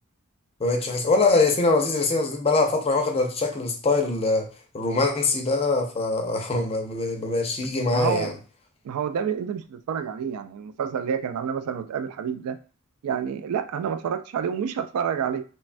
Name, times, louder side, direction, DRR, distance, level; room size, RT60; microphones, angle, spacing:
voice 1, 0.6-4.5 4.7-8.3, left 3 dB, 25° left, 0.5 m, -23 dB
voice 2, 7.9-8.3 8.8-12.6 13.0-15.4, right 7 dB, 85° right, 0.3 m, -28 dB
3.1 x 2.2 x 2.5 m
head